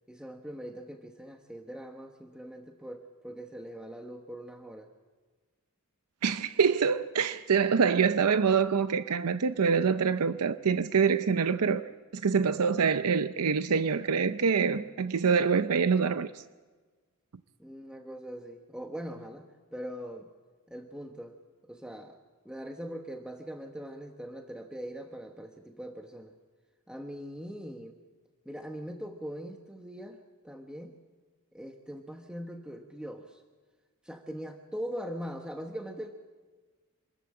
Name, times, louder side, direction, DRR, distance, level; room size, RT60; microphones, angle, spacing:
voice 1, 0.1-4.9 17.6-20.3 20.7-21.4 21.6-22.2 22.4-26.3 26.9-28.0 28.4-30.9 31.5-33.4 34.0-36.1, equal, 5° right, 1.1 m, -41 dB
voice 2, 6.2-16.4, right 6 dB, 85° right, 0.6 m, -25 dB
26.5 x 14.0 x 8.7 m
head